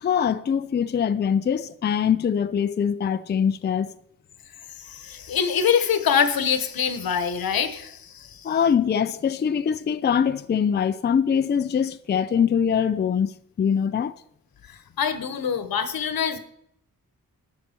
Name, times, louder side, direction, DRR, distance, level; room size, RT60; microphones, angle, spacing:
voice 1, 0.0-3.9 8.4-14.1, left 7 dB, 30° left, 0.4 m, -23 dB
voice 2, 4.8-8.5 14.7-16.4, left 7 dB, 90° left, 1.2 m, -25 dB
12.5 x 8.6 x 4.5 m
wide cardioid pair, 155°, 34 cm